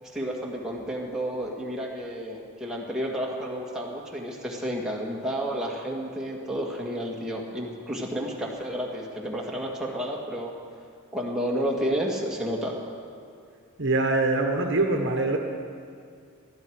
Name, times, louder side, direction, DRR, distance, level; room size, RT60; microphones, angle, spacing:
voice 1, 0.0-10.5 11.1-12.8, equal, 5° right, -3 dB, 1.8 m, -31 dB
voice 2, 13.8-15.4, right 2 dB, 55° right, 3 dB, 1.2 m, -23 dB
20.5 x 13.0 x 4.7 m, 2.3 s
head